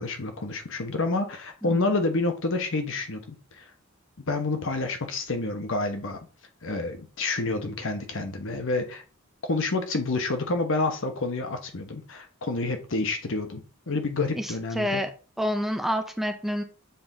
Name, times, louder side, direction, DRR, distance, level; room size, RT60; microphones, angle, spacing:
voice 1, 0.0-3.6 4.2-6.2 6.6-9.0 9.5-13.6 13.9-15.0, left 3 dB, 65° left, 6 dB, 1.0 m, -28 dB
voice 2, 1.6-2.0 14.4-15.1 15.4-16.6, equal, ahead, 6 dB, 0.5 m, -28 dB
6.9 x 3.7 x 3.9 m, 0.37 s
head